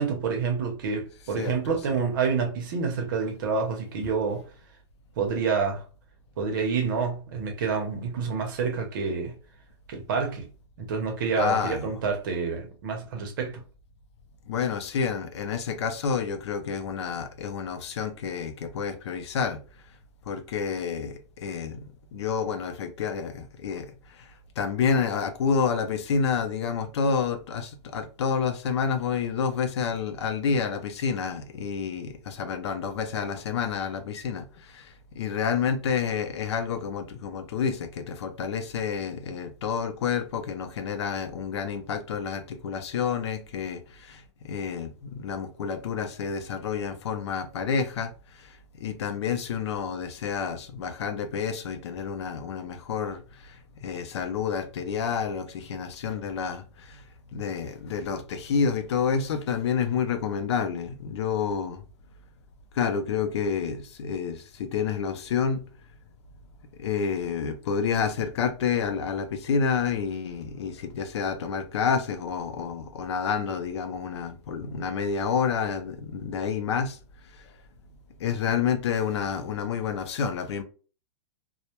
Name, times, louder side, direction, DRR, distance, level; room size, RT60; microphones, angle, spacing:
voice 1, 0.0-4.4 5.2-5.8 6.4-9.3 9.9-10.5 10.8-13.6, right 5 dB, 45° right, 0.7 m, -28 dB
voice 2, 11.4-11.9 14.5-19.6 20.3-21.8 22.1-23.9 24.2-24.3 24.6-48.1 48.4-57.0 57.3-61.8 62.7-65.6 66.8-77.0 77.4-77.5 78.2-80.6, left 6 dB, 70° left, 0.5 m, -29 dB
2.1 x 2.0 x 2.9 m
supercardioid pair, 175°, 15 cm